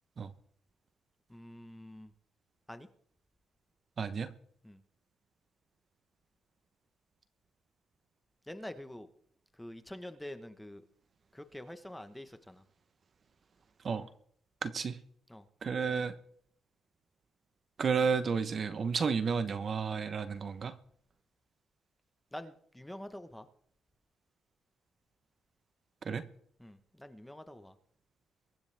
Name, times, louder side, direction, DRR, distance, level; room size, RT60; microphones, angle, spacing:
voice 1, 1.3-2.1 2.7-2.9 4.6-4.8 8.5-9.1 9.6-10.8 11.3-12.6 15.3-15.5 22.3-23.5 26.6-27.7, left 1 dB, 5° left, 9 dB, 1.1 m, -46 dB
voice 2, 4.0-4.3 13.8-14.1 14.6-15.0 15.6-16.1 17.8-20.7 26.1-26.2, right 5 dB, 45° right, 12 dB, 0.9 m, -31 dB
23.0 x 10.5 x 3.5 m, 0.64 s
cardioid pair, 110°, 0 cm